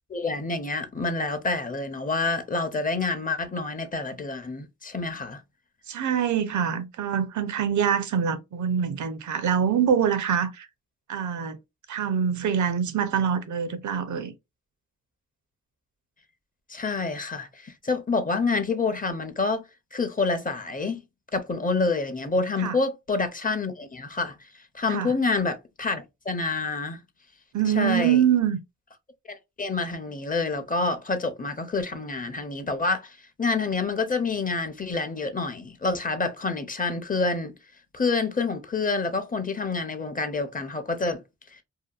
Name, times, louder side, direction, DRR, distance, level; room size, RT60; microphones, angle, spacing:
voice 1, 0.1-5.4 16.7-19.6 19.9-21.0 21.3-27.0 27.8-28.2 29.3-37.5 37.9-41.2 41.5-41.6, left 3 dB, 25° left, 0.5 m, -28 dB
voice 2, 5.9-10.7 11.1-11.6 11.9-14.3 22.6-22.8 24.9-25.1 27.5-28.6, right 8 dB, 70° right, 0.5 m, -25 dB
2.7 x 2.2 x 2.3 m
cardioid pair, 65°, 31 cm